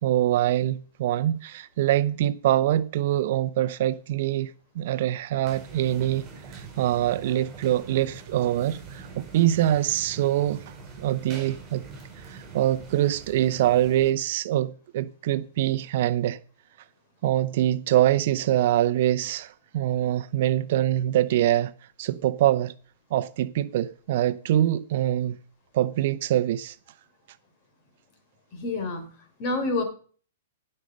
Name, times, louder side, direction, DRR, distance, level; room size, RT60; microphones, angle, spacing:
voice 1, 0.0-6.3 6.5-11.8 12.2-16.4 17.2-21.7 22.0-22.7 23.1-25.4 25.7-26.8, right 13 dB, 55° right, 0.6 m, -24 dB
sound 1, 5.4-14.1, right 4 dB, 20° right, 6.8 m, -43 dB
voice 2, 28.5-29.8, left 2 dB, 35° left, 3.6 m, -29 dB
17.0 x 6.6 x 5.2 m
hypercardioid pair, 145°, 0 cm